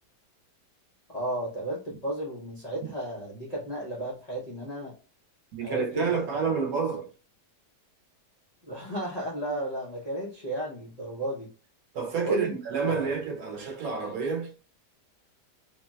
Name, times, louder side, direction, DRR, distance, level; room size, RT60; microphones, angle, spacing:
voice 1, 1.1-4.9 5.6-6.1 8.6-11.5 12.2-12.5 12.8-13.1, right 1 dB, 75° left, 0.3 m, -33 dB
voice 2, 5.5-7.1 11.9-14.5, right 5 dB, 65° right, 1.0 m, -29 dB
3.2 x 2.2 x 2.2 m
omnidirectional pair, 1.8 m